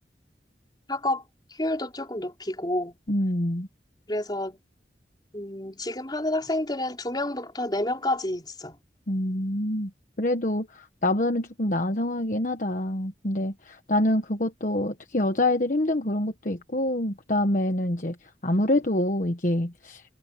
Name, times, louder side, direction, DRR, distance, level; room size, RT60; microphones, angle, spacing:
voice 1, 0.9-1.2 1.5-3.0 4.1-4.6 5.3-8.8, left 1 dB, 25° left, 5.0 m, -29 dB
voice 2, 3.1-3.7 9.1-9.9 10.2-20.0, left 1 dB, 45° left, 1.2 m, -26 dB
head